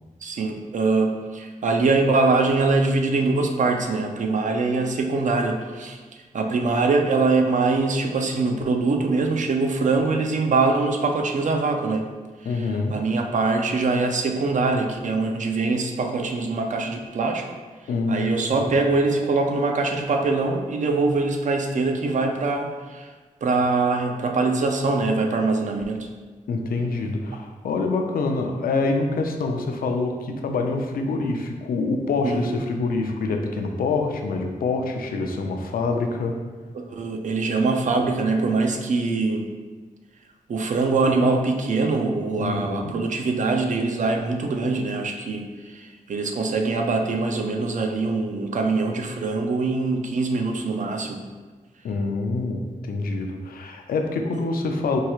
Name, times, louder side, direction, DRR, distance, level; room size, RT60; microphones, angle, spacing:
voice 1, 0.2-6.0 6.3-12.0 12.5-17.5 18.1-23.1 23.4-26.1 32.2-32.4 36.9-39.5 40.5-51.2, right 3 dB, 60° right, 4 dB, 0.5 m, -23 dB
voice 2, 12.5-13.1 17.9-18.4 26.5-36.3 42.4-43.0 51.8-55.0, left 3 dB, 90° left, 3 dB, 0.4 m, -26 dB
4.6 x 2.3 x 3.0 m, 1.4 s
wide cardioid pair, 85°, 15 cm